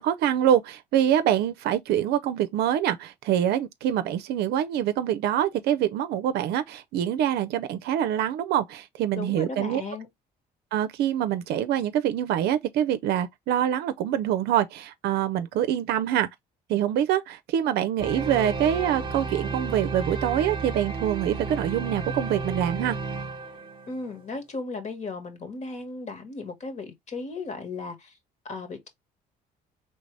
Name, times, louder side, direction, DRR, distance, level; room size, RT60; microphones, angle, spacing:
voice 1, 0.0-9.8 10.7-16.3 16.7-23.0, right 10 dB, 75° right, 0.5 m, -25 dB
voice 2, 9.1-10.1 23.9-28.1 28.4-28.9, left 3 dB, 45° left, 1.5 m, -36 dB
sound 1, 18.0-24.3, right 4 dB, 30° right, 1.1 m, -33 dB
4.0 x 3.3 x 3.2 m
cardioid pair, 110°, 17 cm